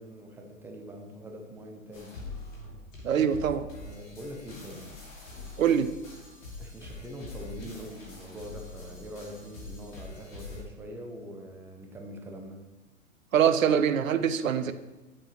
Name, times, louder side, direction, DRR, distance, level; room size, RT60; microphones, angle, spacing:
voice 1, 0.0-2.1 3.0-3.3 3.7-4.8 6.6-12.6, equal, 5° right, 2 dB, 0.5 m, -43 dB
sound 1, 1.9-10.6, left 2 dB, 65° left, 2.6 m, -44 dB
voice 2, 3.0-3.6 5.6-5.9 13.3-14.7, right 8 dB, 70° right, 11 dB, 0.7 m, -24 dB
8.7 x 6.7 x 2.9 m, 1.1 s
figure-of-eight pair, 115°, 41 cm